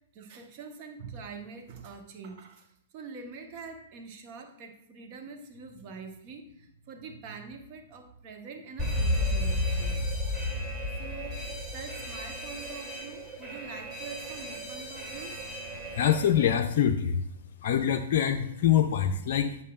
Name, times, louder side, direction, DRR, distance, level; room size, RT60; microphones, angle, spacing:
voice 1, 0.0-10.0 11.0-11.4 11.7-15.4, right 4 dB, 45° right, 4 dB, 1.1 m, -45 dB
Alarm, 8.8-16.5, left 1 dB, 20° right, 2.4 m, -33 dB
voice 2, 15.9-17.2 17.6-19.6, left 9 dB, 55° left, 4 dB, 0.4 m, -25 dB
8.5 x 7.2 x 2.4 m, 0.74 s
figure-of-eight pair, 110°, 0 cm